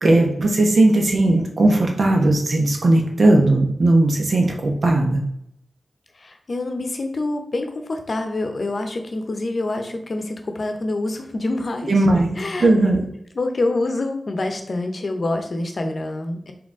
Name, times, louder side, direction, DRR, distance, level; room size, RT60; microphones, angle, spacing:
voice 1, 0.0-5.2 11.9-13.0, right 2 dB, 70° right, 1 dB, 0.9 m, -17 dB
voice 2, 6.2-11.9 12.4-12.7 13.3-16.5, left 2 dB, 60° left, 5 dB, 0.7 m, -26 dB
3.9 x 2.9 x 3.7 m, 0.75 s
cardioid pair, 50°, 0 cm